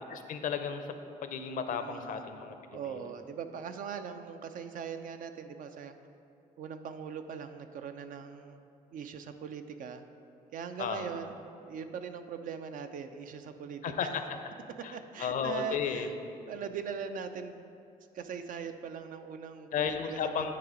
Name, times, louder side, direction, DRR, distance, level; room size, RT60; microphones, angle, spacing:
voice 1, 0.1-0.9 1.2-2.6 2.9-3.0 10.8-11.1 13.8-14.2 14.8-14.9 15.2-16.1 19.7-20.5, left 7 dB, 65° left, 7 dB, 0.6 m, -33 dB
voice 2, 1.8-2.2 2.7-5.9 6.6-10.0 10.5-11.4 11.7-14.1 14.8-16.1 16.5-17.7 18.1-20.5, right 6 dB, 65° right, 8 dB, 0.5 m, -41 dB
9.7 x 3.9 x 5.0 m, 2.6 s
cardioid pair, 90°, 15 cm